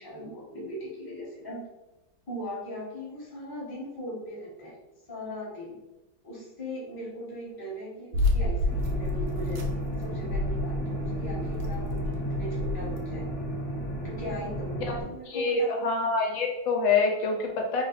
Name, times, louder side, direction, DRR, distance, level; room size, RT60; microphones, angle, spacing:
voice 1, 0.0-1.6 2.3-4.8 5.1-5.8 6.2-9.7 10.0-13.3 14.0-15.9, equal, 15° left, -5 dB, 1.0 m, -39 dB
sound 1, 8.1-13.0, left 2 dB, 85° right, 1.5 m, -30 dB
sound 2, 8.7-15.0, right 1 dB, 40° left, 1.0 m, -33 dB
voice 2, 15.3-17.8, left 4 dB, 80° left, 1 dB, 1.3 m, -26 dB
3.6 x 2.6 x 4.0 m, 0.97 s
omnidirectional pair, 2.1 m